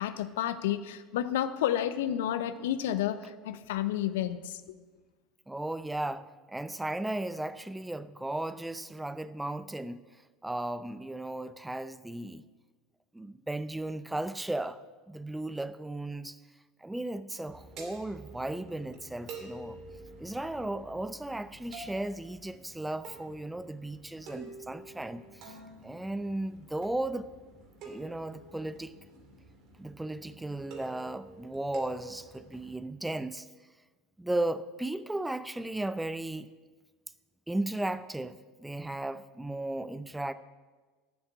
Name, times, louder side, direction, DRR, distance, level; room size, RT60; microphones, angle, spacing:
voice 1, 0.0-4.7, left 11 dB, 70° left, 0.6 m, -31 dB
voice 2, 5.5-10.0 10.4-12.5 13.1-16.4 16.8-19.8 20.2-25.5 25.8-27.3 27.8-29.0 29.8-33.5 34.2-36.5 37.5-40.3, right 1 dB, 10° right, 0.6 m, -35 dB
sound 1, 17.4-32.8, right 3 dB, 55° right, 2.7 m, -49 dB
9.5 x 7.9 x 8.4 m
hypercardioid pair, 75°, 0 cm